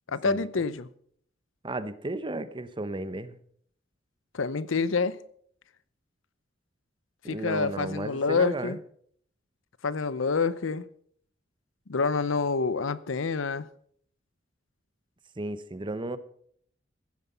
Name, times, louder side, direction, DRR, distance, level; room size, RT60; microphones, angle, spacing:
voice 1, 0.1-0.9 4.3-5.2 7.3-8.8 9.8-10.9 11.9-13.7, left 4 dB, 80° left, 0.7 m, -27 dB
voice 2, 1.6-3.4 7.2-8.8 15.4-16.2, right 2 dB, 25° right, 0.8 m, -34 dB
16.0 x 9.4 x 5.6 m
head